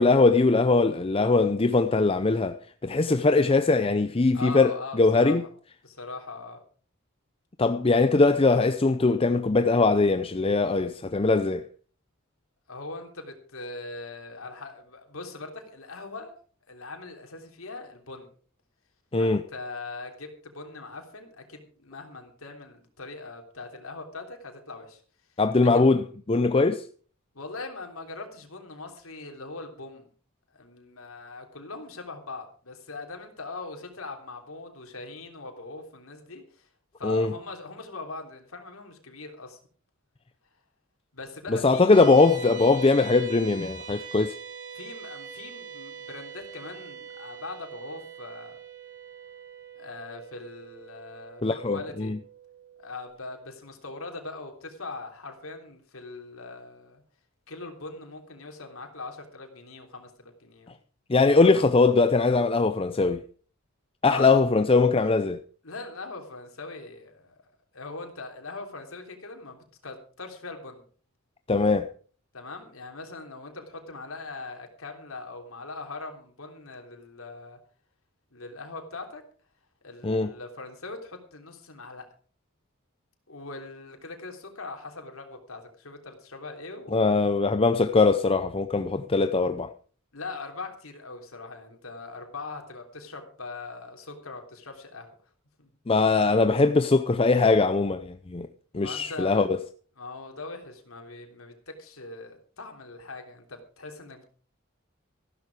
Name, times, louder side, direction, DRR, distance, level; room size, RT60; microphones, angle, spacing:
voice 1, 0.0-4.7 5.0-5.4 7.6-11.7 19.1-19.4 25.4-26.9 37.0-37.3 41.5-44.3 51.4-52.2 61.1-63.2 64.0-65.4 71.5-71.9 80.0-80.3 86.9-89.7 95.9-98.5 98.7-99.6, left 3 dB, 25° left, 0.6 m, -21 dB
voice 2, 4.3-5.5 5.8-6.6 12.7-16.3 16.7-18.3 19.2-25.0 25.6-25.9 27.3-30.1 30.5-36.7 37.0-39.6 41.1-41.9 42.3-43.1 44.7-48.6 49.7-52.2 52.8-57.0 57.5-60.8 64.1-64.4 65.6-67.3 67.7-70.8 72.3-77.6 78.3-79.2 79.8-82.1 83.3-87.2 90.1-95.1 95.6-95.7 98.8-99.6 100.0-104.3, left 3 dB, 80° left, 3.5 m, -41 dB
sound 1, 41.9-53.1, right 6 dB, 40° right, 7.1 m, -43 dB
15.0 x 12.5 x 4.9 m
head